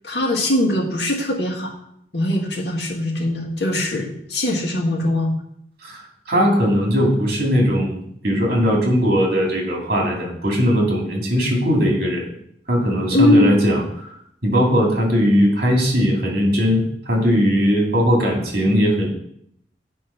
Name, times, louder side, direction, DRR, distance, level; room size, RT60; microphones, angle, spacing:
voice 1, 0.0-1.8 2.1-5.3 13.1-13.6, left 1 dB, 65° left, -1 dB, 2.0 m, -21 dB
voice 2, 5.8-12.3 12.7-13.8 14.4-19.1, equal, 55° right, -1 dB, 2.5 m, -19 dB
8.4 x 4.6 x 5.8 m, 0.71 s
head